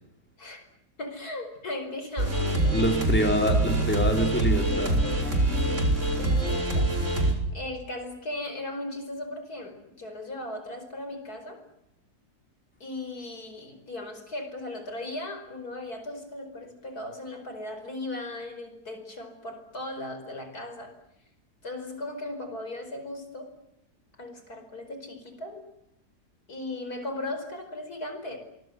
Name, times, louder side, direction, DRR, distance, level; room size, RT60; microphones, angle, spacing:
voice 1, 1.0-2.8 3.3-3.4 4.6-7.2 7.5-11.6 12.8-20.9 21.6-23.5 24.2-25.6 26.5-28.4, left 2 dB, 70° left, 7 dB, 5.4 m, -37 dB
sound 1, 2.2-7.3, right 2 dB, 50° right, 5.3 m, -25 dB
voice 2, 2.7-5.0, equal, 5° left, 4 dB, 3.9 m, -26 dB
30.0 x 24.0 x 7.9 m, 0.85 s
omnidirectional pair, 1.7 m